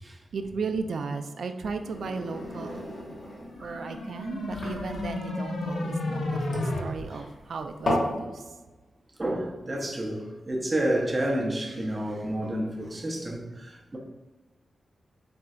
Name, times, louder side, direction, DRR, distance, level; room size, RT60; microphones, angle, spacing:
voice 1, 0.3-3.0 3.6-8.6, right 4 dB, 75° right, 0.3 m, -35 dB
sound 1, 1.7-8.2, left 1 dB, 45° left, 1.1 m, -34 dB
sound 2, 3.5-6.8, left 2 dB, 85° left, 0.6 m, -32 dB
voice 2, 9.2-14.0, right 1 dB, 20° right, 0.5 m, -30 dB
4.2 x 3.8 x 2.3 m
wide cardioid pair, 165°, 0 cm